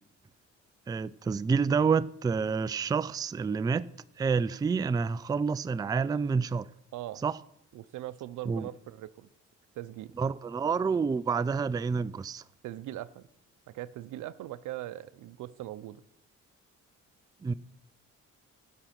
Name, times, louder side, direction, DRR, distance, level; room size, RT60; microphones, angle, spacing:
voice 1, 0.9-3.9 4.2-6.7 7.2-7.4 8.5-8.7 10.2-12.4 17.4-17.5, right 5 dB, 15° right, 0.3 m, -28 dB
voice 2, 6.9-7.2 7.7-9.3 9.8-10.1 12.6-13.3 13.7-16.0, right 14 dB, 80° right, 0.7 m, -40 dB
15.5 x 6.0 x 5.9 m
cardioid pair, 90°, 30 cm